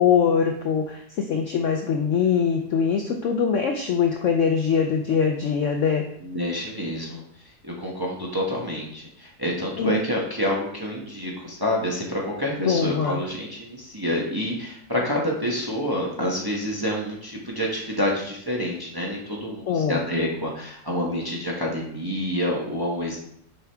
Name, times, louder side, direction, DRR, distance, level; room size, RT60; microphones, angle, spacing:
voice 1, 0.0-6.0 9.8-10.0 12.6-13.2 19.7-20.0, left 7 dB, 70° left, 3 dB, 0.7 m, -22 dB
voice 2, 6.2-7.2 7.6-23.2, equal, 15° right, -3 dB, 0.8 m, -28 dB
7.0 x 5.0 x 3.4 m, 0.70 s
omnidirectional pair, 1.9 m